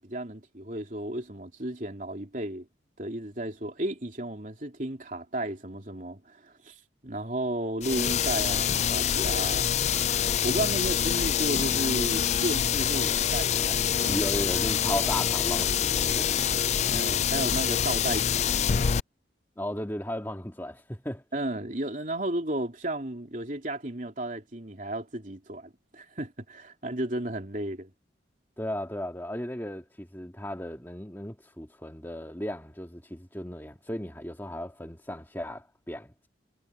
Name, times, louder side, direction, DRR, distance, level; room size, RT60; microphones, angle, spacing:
voice 1, 0.0-2.7 3.0-6.8 7.0-9.7 10.4-14.2 16.9-18.7 21.3-27.9, right 1 dB, 45° right, 3.2 m, -33 dB
sound 1, 7.8-19.0, left 8 dB, 35° left, 0.4 m, -26 dB
voice 2, 14.1-16.9 19.6-21.2 28.6-36.3, left 1 dB, 10° left, 2.1 m, -35 dB
head